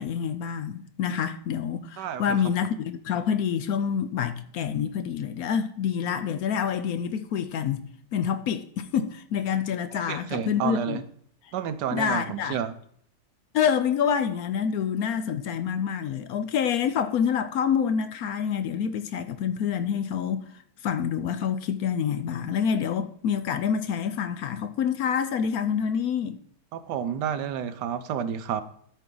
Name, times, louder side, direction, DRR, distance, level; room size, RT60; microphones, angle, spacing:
voice 1, 0.0-11.0 11.9-12.6 13.5-20.4 20.8-26.4, left 7 dB, 70° left, 1.0 m, -27 dB
voice 2, 2.0-2.4 10.1-11.0 11.5-12.7 26.7-28.6, right 8 dB, 85° right, 1.3 m, -30 dB
13.0 x 4.5 x 3.8 m
omnidirectional pair, 1.8 m